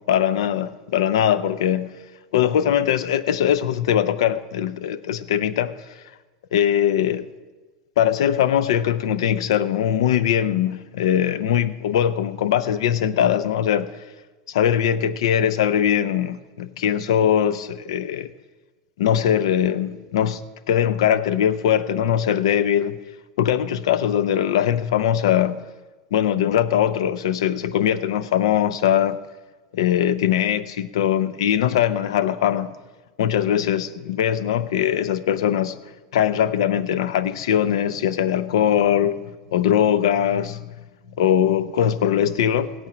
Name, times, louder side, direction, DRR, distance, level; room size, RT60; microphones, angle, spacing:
voice 1, 0.1-1.9 2.3-5.7 6.5-7.3 8.0-13.9 14.5-18.3 19.0-20.4 20.7-23.0 23.4-25.6 26.1-29.2 29.7-32.7 33.2-35.8 36.1-39.2 39.5-40.7 41.2-42.7, left 9 dB, 85° left, 0.7 m, -21 dB
17.0 x 8.8 x 6.1 m
supercardioid pair, 145°, 3 cm